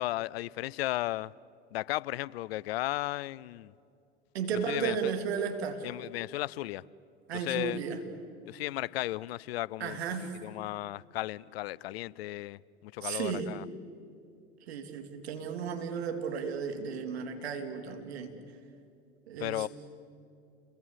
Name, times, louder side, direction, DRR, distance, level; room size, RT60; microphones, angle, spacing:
voice 1, 0.0-1.3 1.7-3.7 4.7-5.1 5.8-6.8 7.3-7.8 8.5-13.6 19.4-19.7, left 17 dB, 70° left, 0.6 m, -35 dB
voice 2, 4.3-5.8 7.3-8.0 9.8-10.3 13.0-13.5 14.7-18.3 19.3-19.7, right 6 dB, 80° right, 3.1 m, -34 dB
30.0 x 22.5 x 8.2 m
hypercardioid pair, 80°, 31 cm